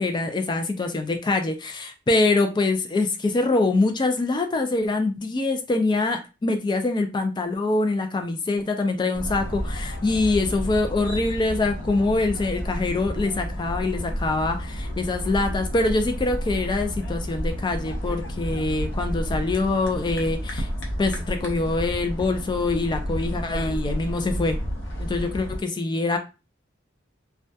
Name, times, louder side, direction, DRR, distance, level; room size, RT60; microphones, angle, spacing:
voice 1, 0.0-20.7 21.0-24.6 25.0-26.2, left 2 dB, 25° left, 6 dB, 0.3 m, -24 dB
sound 1, 9.1-25.6, equal, 70° left, 0.6 m, -31 dB
2.2 x 2.2 x 2.6 m, 0.30 s
head